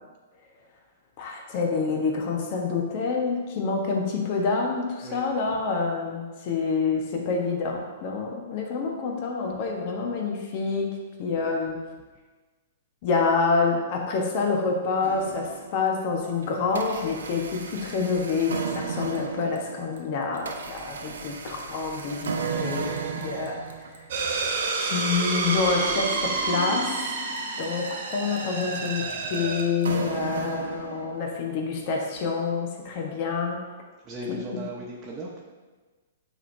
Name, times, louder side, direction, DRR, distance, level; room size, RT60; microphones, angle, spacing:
voice 1, 1.2-11.8 13.0-23.6 24.8-27.0 27.6-33.6 34.3-34.6, left 4 dB, 45° left, 1 dB, 1.2 m, -27 dB
sound 1, 15.0-16.0 16.4-31.5, right 5 dB, 80° right, 0.7 m, -35 dB
sound 2, 24.1-29.6, right 3 dB, 60° right, 1.5 m, -29 dB
voice 2, 34.0-35.4, right 1 dB, 25° right, -5 dB, 1.0 m, -37 dB
9.8 x 3.7 x 2.7 m, 1.3 s
hypercardioid pair, 120°, 0 cm